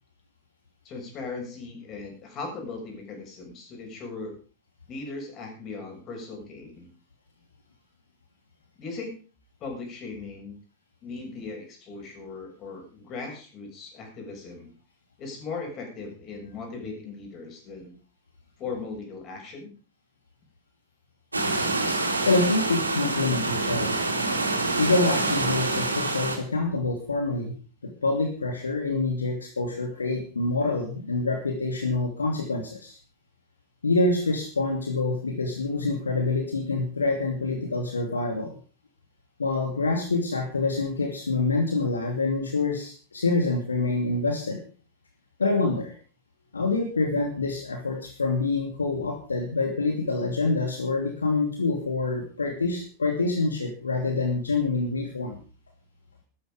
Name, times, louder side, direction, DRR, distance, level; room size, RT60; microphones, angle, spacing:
voice 1, 0.8-4.4 4.9-6.9 8.8-9.1 9.6-10.6 11.0-14.7 15.2-18.0 18.6-19.7, left 4 dB, 35° left, 2 dB, 6.9 m, -38 dB
sound 1, 21.3-26.4, right 2 dB, 80° right, 3.3 m, -26 dB
voice 2, 22.2-24.0 24.8-27.6 28.0-33.0 33.8-38.5 39.4-44.6 45.4-45.9 46.5-55.4, left 3 dB, 75° left, 2 dB, 2.6 m, -26 dB
13.5 x 13.0 x 5.1 m, 0.39 s
figure-of-eight pair, 90°, 0 cm